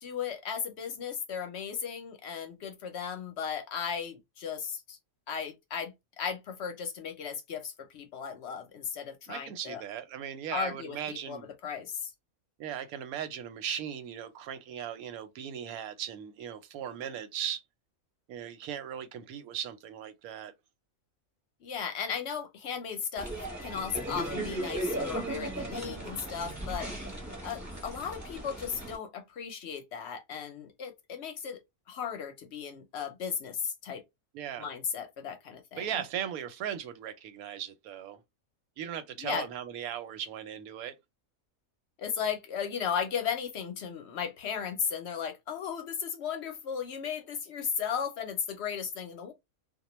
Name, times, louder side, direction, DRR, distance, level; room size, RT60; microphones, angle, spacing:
voice 1, 0.0-5.0 5.3-9.8 10.5-12.1 21.6-23.3 23.6-27.0 27.4-31.6 31.9-34.0 34.6-35.9 39.2-39.5 42.0-49.3, left 7 dB, 65° left, 0.7 m, -36 dB
voice 2, 9.3-11.5 12.6-17.6 18.3-20.5 34.3-34.7 35.8-38.2 38.8-40.9, right 9 dB, 90° right, 1.0 m, -38 dB
sound 1, 23.2-29.0, right 1 dB, 15° right, 0.6 m, -36 dB
2.2 x 2.2 x 2.9 m
omnidirectional pair, 1.5 m